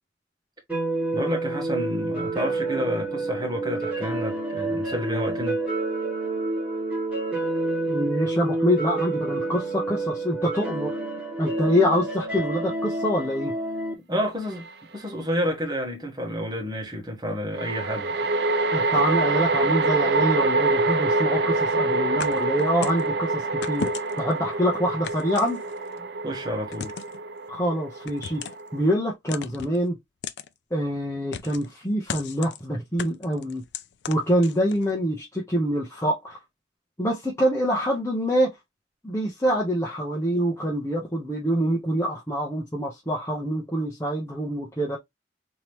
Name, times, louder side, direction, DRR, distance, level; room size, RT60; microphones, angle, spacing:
sound 1, 0.7-13.9, right 2 dB, 10° right, 2.0 m, -28 dB
voice 1, 1.1-5.6 14.1-14.7 14.9-18.3 26.0-26.9, equal, 25° right, 1.4 m, -29 dB
voice 2, 7.9-11.0 11.4-13.5 18.7-23.9 24.2-25.6 27.5-28.4 28.7-30.0 30.7-33.6 34.1-36.4 37.0-38.5 39.0-45.0, equal, 15° left, 0.9 m, -25 dB
sound 2, 14.6-14.7 17.5-28.9, right 3 dB, 65° right, 0.5 m, -25 dB
sound 3, 22.2-23.1 23.6-24.3 25.0-26.0 26.7-27.2 28.1-28.7 29.3-29.8 30.2-30.5 31.3-31.7 32.1-32.6 33.0-34.9, left 6 dB, 75° left, 0.4 m, -35 dB
3.7 x 3.0 x 3.1 m
head